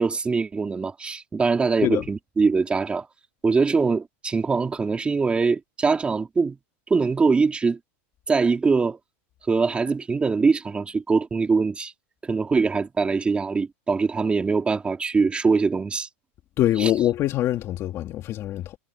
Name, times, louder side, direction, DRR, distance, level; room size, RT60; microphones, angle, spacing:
voice 1, 0.0-3.1 3.4-6.6 6.9-7.8 8.3-9.0 9.5-11.9 12.2-16.1 16.8-16.9, right 4 dB, 15° right, 3.3 m, -22 dB
voice 2, 16.6-18.8, left 13 dB, 35° left, 2.6 m, -24 dB
supercardioid pair, 140°, 7 cm